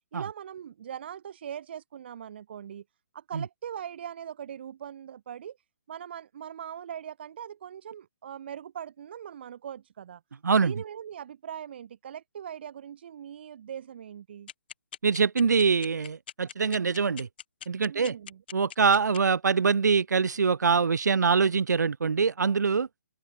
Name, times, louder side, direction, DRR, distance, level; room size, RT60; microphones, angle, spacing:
voice 1, 0.1-2.8 3.1-5.6 5.9-10.2 10.6-14.5 17.9-18.4, right 9 dB, 35° right, 1.9 m, -41 dB
voice 2, 10.4-10.8 15.0-17.3 17.7-18.2 18.5-22.9, right 5 dB, 65° right, 3.8 m, -24 dB
sound 1, 14.5-19.2, left 10 dB, 30° left, 4.2 m, -40 dB
hypercardioid pair, 175°, 10 cm